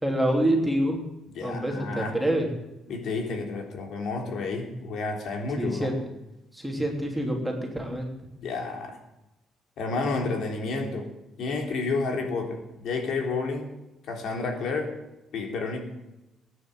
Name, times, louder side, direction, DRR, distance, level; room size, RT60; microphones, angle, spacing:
voice 1, 0.0-1.0 1.4-2.5 5.6-6.0 6.5-8.1, right 1 dB, ahead, 0 dB, 3.2 m, -26 dB
voice 2, 1.3-2.2 2.9-5.9 8.4-9.0 9.8-11.1 11.4-13.7 14.1-14.9 15.3-15.8, left 3 dB, 65° left, 3 dB, 3.7 m, -30 dB
19.0 x 9.8 x 7.9 m, 0.95 s
cardioid pair, 140°, 0 cm